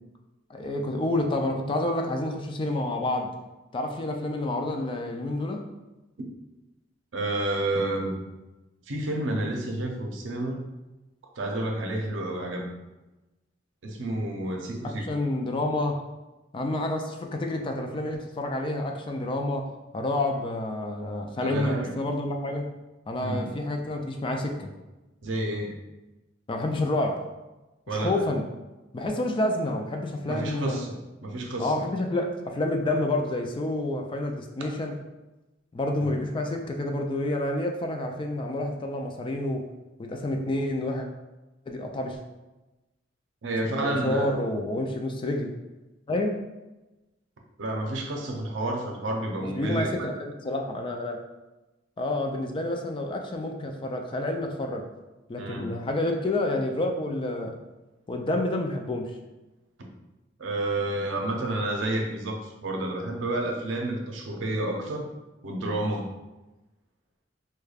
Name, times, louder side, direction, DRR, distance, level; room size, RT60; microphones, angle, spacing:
voice 1, 0.5-3.3 3.7-5.6 14.8-16.0 16.5-22.7 23.1-24.7 26.5-27.2 27.9-28.4 28.9-30.8 31.6-34.9 35.7-39.7 40.0-41.1 41.7-42.2 43.7-45.5 46.1-46.3 49.4-50.1 50.4-51.2 52.0-54.9 55.3-57.6 58.1-59.2, left 1 dB, 25° left, 3 dB, 0.3 m, -29 dB
voice 2, 7.1-8.1 8.9-10.7 11.4-12.7 13.8-15.1 21.4-21.9 23.2-23.5 25.2-25.7 27.9-28.2 30.3-31.7 34.6-34.7 36.0-36.1 43.4-44.4 47.6-50.1 55.4-55.8 59.8-59.9 60.4-65.1 65.4-66.1, right 1 dB, 80° right, 1 dB, 0.6 m, -30 dB
4.8 x 2.2 x 2.3 m, 1.1 s
head